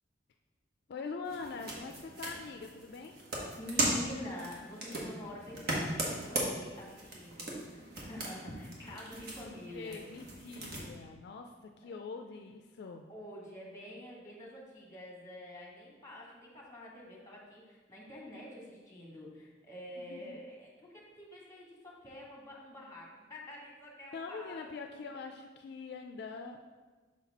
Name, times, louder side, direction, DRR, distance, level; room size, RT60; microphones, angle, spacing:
voice 1, 0.9-3.2 9.7-13.1 20.1-20.4 24.1-26.7, left 4 dB, 60° left, 5 dB, 0.3 m, -43 dB
sound 1, 1.2-10.9, right 1 dB, 60° right, 1.3 m, -38 dB
voice 2, 3.6-10.0 11.8-12.0 13.1-24.7, left 1 dB, 15° left, -3 dB, 1.4 m, -47 dB
6.2 x 4.1 x 4.1 m, 1.3 s
head